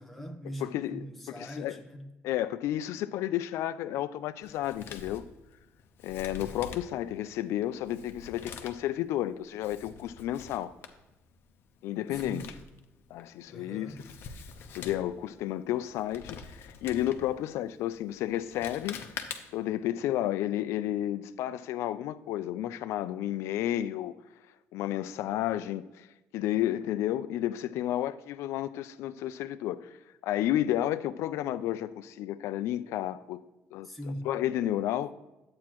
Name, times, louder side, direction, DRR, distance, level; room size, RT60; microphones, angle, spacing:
voice 1, 0.0-2.1 12.1-12.6 13.5-14.0 33.8-34.3, equal, ahead, 0.9 m, -41 dB
voice 2, 0.6-1.8 2.2-5.2 6.0-10.7 11.8-12.4 13.1-13.9 14.7-19.0 19.5-24.2 24.7-26.1 26.3-30.0 30.2-33.4 33.7-33.9 34.3-35.1, left 13 dB, 80° left, 0.4 m, -32 dB
Male speech man speaking, 4.4-19.7, left 6 dB, 50° left, 0.8 m, -46 dB
11.0 x 8.6 x 3.0 m
cardioid pair, 170°, 5 cm